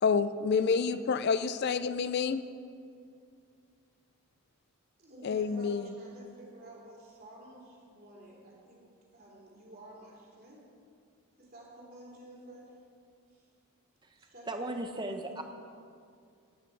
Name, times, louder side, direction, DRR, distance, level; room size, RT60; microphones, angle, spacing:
voice 1, 0.0-2.4 5.2-5.9, left 5 dB, 50° left, 13 dB, 0.3 m, -28 dB
voice 2, 5.0-8.9 9.1-10.6 11.4-12.8 13.3-13.5 14.2-14.7, right 1 dB, 40° right, -3 dB, 2.9 m, -51 dB
voice 3, 14.5-15.4, right 1 dB, 20° right, 5 dB, 0.8 m, -36 dB
16.0 x 8.5 x 4.5 m, 2.3 s
head